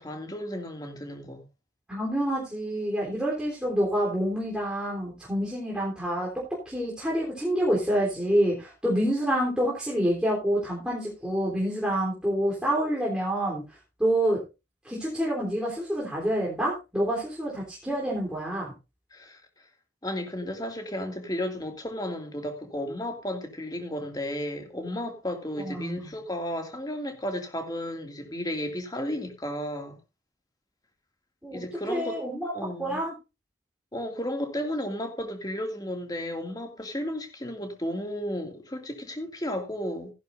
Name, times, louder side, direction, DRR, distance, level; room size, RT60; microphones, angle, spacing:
voice 1, 0.0-1.4 19.1-19.4 20.0-30.0 31.5-32.2 32.5-33.0 33.9-40.1, left 1 dB, 20° left, 2.3 m, -33 dB
voice 2, 1.9-13.6 14.0-14.4 14.8-18.7 25.6-26.1 31.4-31.6 31.9-32.5 32.8-33.1, equal, 5° right, 3.5 m, -27 dB
15.5 x 11.0 x 2.6 m
head